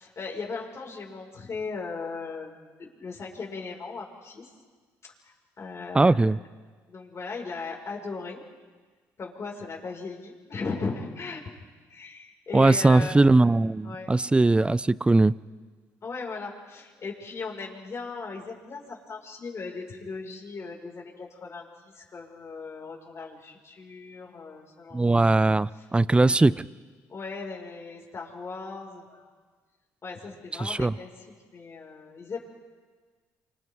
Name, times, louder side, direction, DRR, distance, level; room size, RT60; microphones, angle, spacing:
voice 1, 0.0-4.5 5.0-6.3 6.9-8.4 9.2-11.4 11.9-13.2 13.8-14.1 16.0-25.4 26.2-26.6 27.1-29.3 30.0-31.3 31.5-32.4, left 4 dB, 40° left, 5.3 m, -38 dB
voice 2, 5.9-6.4 12.5-15.3 24.9-26.5 30.6-30.9, right 2 dB, 15° right, 0.5 m, -20 dB
29.5 x 25.5 x 3.7 m
supercardioid pair, 75°, 7 cm